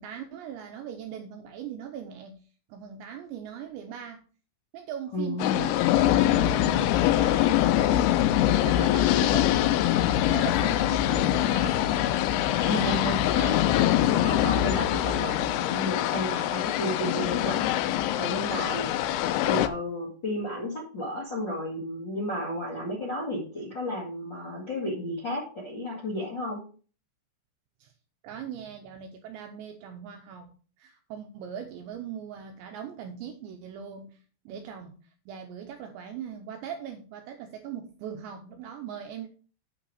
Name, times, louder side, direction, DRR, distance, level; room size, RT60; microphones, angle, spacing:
voice 1, 0.0-2.4 2.7-4.2 4.7-8.1 8.4-10.0 10.3-12.1 27.8-27.9 28.2-30.5 30.8-34.2 34.5-39.3, right 8 dB, 80° right, 5 dB, 2.6 m, -40 dB
voice 2, 5.1-5.7 12.5-13.9 14.2-17.7 18.2-18.9 19.4-26.6, left 1 dB, 45° left, -3 dB, 1.4 m, -32 dB
sound 1, 5.4-19.7, left 12 dB, 90° left, 3.3 m, -24 dB
9.1 x 6.2 x 4.8 m, 0.40 s
omnidirectional pair, 5.9 m